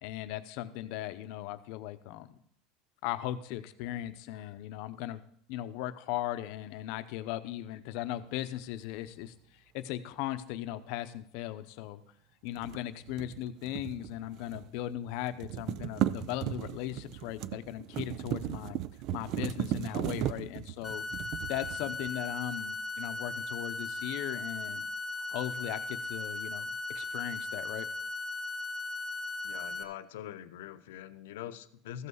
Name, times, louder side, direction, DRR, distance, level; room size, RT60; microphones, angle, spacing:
voice 1, 0.0-2.4 3.0-5.2 5.5-12.0 12.4-18.8 19.1-21.0 21.5-24.9 25.3-27.9, left 13 dB, 55° left, 11 dB, 0.7 m, -38 dB
sound 1, 12.5-14.8 15.1-22.4, right 12 dB, 40° right, 0.4 m, -36 dB
sound 2, 20.8-29.8, left 2 dB, ahead, 0.9 m, -37 dB
voice 2, 29.4-32.1, left 11 dB, 90° left, 12 dB, 0.8 m, -43 dB
14.5 x 5.5 x 6.3 m, 0.70 s
supercardioid pair, 165°, 0 cm